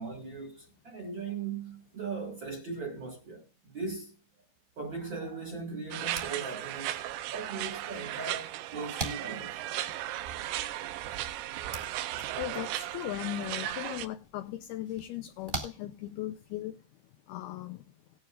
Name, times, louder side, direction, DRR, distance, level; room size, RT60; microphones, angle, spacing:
voice 1, 0.0-4.1 4.8-7.0 7.3-9.6 12.1-12.3, right 4 dB, 40° right, 1.8 m, -39 dB
sound 1, 5.9-14.1, right 13 dB, 85° right, 3.0 m, -36 dB
sound 2, 6.0-16.6, right 2 dB, 20° right, 1.6 m, -46 dB
voice 2, 12.2-16.8 17.3-17.8, left 14 dB, 75° left, 2.4 m, -38 dB
19.0 x 9.4 x 2.5 m
omnidirectional pair, 5.2 m